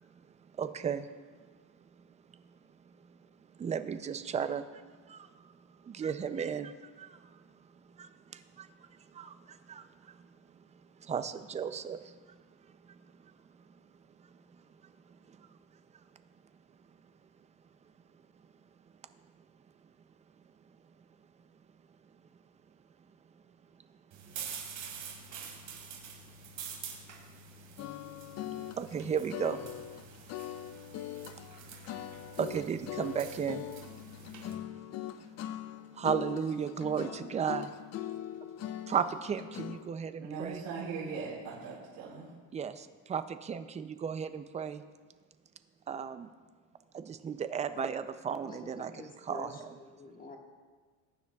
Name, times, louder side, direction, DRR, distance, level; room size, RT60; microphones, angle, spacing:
voice 1, 0.5-1.1 2.3-2.4 2.9-3.2 3.5-5.5 5.8-7.4 7.8-10.3 10.5-12.4 12.7-13.2 13.6-13.7 14.2-15.6 28.7-29.6 32.4-33.6 35.9-37.7 38.9-40.6 42.5-44.8 45.9-46.3 46.9-49.8, right 7 dB, 20° right, 10 dB, 0.4 m, -36 dB
sound 1, 24.1-34.5, right 5 dB, 55° right, 2.9 m, -47 dB
sound 2, 27.8-39.9, left 11 dB, 45° left, 0.5 m, -42 dB
voice 2, 40.2-42.3, right 5 dB, 90° right, -8 dB, 3.0 m, -39 dB
voice 3, 48.4-49.5 49.8-50.4, left 3 dB, 20° left, 0 dB, 1.7 m, -47 dB
21.0 x 9.8 x 2.3 m, 1.5 s
cardioid pair, 150°, 36 cm